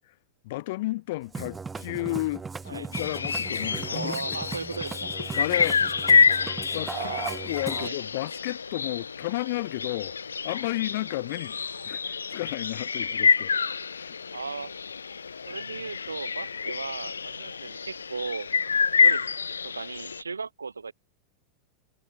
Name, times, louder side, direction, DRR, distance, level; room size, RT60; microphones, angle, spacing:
voice 1, 0.4-4.2 5.3-5.8 6.7-13.5 13.9-14.1, left 19 dB, 50° left, 0.9 m, -33 dB
Musical instrument, 1.2-7.9, right 4 dB, 15° right, 2.7 m, -37 dB
sound 1, 2.9-20.2, left 5 dB, 75° left, 0.4 m, -27 dB
voice 2, 3.9-5.1 6.9-7.5 7.8-8.0 14.3-14.7 15.5-18.5 19.0-19.2 19.6-20.9, right 4 dB, 75° right, 0.8 m, -36 dB
figure-of-eight pair, 90°, 0 cm